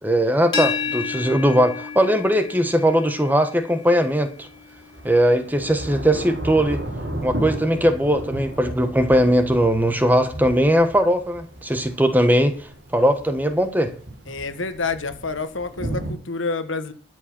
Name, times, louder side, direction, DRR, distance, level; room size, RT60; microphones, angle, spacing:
voice 1, 0.0-4.5 5.0-6.8 7.2-12.6 12.9-13.9, equal, 10° right, 1.2 m, -19 dB
sound 1, 0.5-6.3, left 5 dB, 25° left, 2.8 m, -32 dB
Thunder / Rain, 1.4-1.5 4.4-16.1, right 1 dB, 60° right, 3.6 m, -34 dB
voice 2, 14.3-16.9, left 4 dB, 85° left, 1.4 m, -28 dB
12.5 x 7.9 x 6.1 m
head